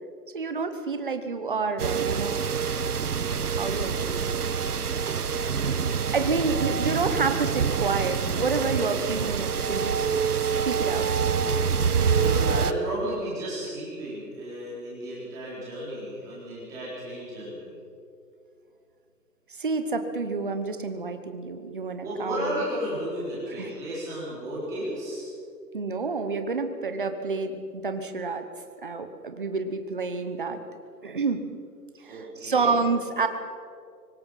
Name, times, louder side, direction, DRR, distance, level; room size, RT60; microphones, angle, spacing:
voice 1, 0.3-2.4 3.1-3.2 3.5-4.5 6.1-10.1 10.6-11.1 19.6-22.6 23.5-23.7 25.7-28.5 28.8-30.6 31.0-31.5 32.0-33.3, right 4 dB, 30° right, 8 dB, 1.1 m, -29 dB
sound 1, 1.8-12.7, right 6 dB, 65° right, 1.1 m, -26 dB
voice 2, 12.1-17.7 22.0-25.3 32.1-32.7, equal, 5° right, -8 dB, 3.9 m, -33 dB
24.0 x 19.0 x 5.8 m, 2.4 s
hypercardioid pair, 170°, 50 cm